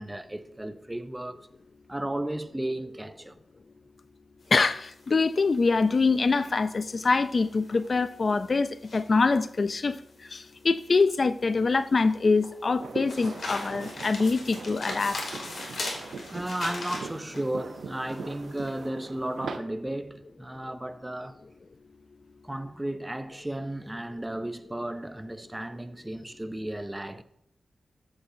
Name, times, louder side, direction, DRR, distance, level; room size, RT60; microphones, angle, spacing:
voice 1, 0.0-1.5 1.9-3.4 16.3-21.4 22.4-27.2, right 1 dB, 10° right, 0.5 m, -34 dB
sound 1, 4.4-18.8, left 2 dB, 65° left, 2.7 m, -41 dB
voice 2, 4.5-10.0 10.3-15.2, left 4 dB, 45° left, 0.3 m, -24 dB
sound 2, 12.8-19.6, right 4 dB, 85° right, 0.7 m, -40 dB
13.5 x 7.8 x 2.6 m
wide cardioid pair, 130°, 0 cm